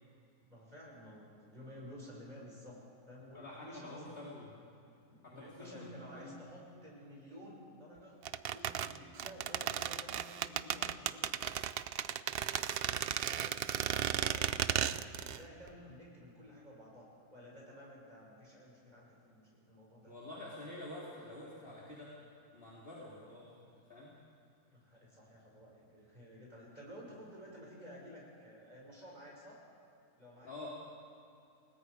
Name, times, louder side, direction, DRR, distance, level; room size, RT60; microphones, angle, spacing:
voice 1, 0.4-2.8 3.1-4.2 5.1-11.6 12.4-12.7 13.1-20.1 24.7-29.6 30.2-30.7, equal, 25° right, -4 dB, 6.2 m, -53 dB
voice 2, 3.3-4.5 5.2-6.4 20.0-22.1 22.5-23.6 23.9-24.1 30.4-30.7, left 2 dB, 35° left, -6 dB, 3.3 m, -48 dB
sound 1, 8.3-15.4 15.7-15.8, right 10 dB, 85° right, 0.5 m, -35 dB
29.0 x 19.0 x 5.0 m, 2.7 s
omnidirectional pair, 1.7 m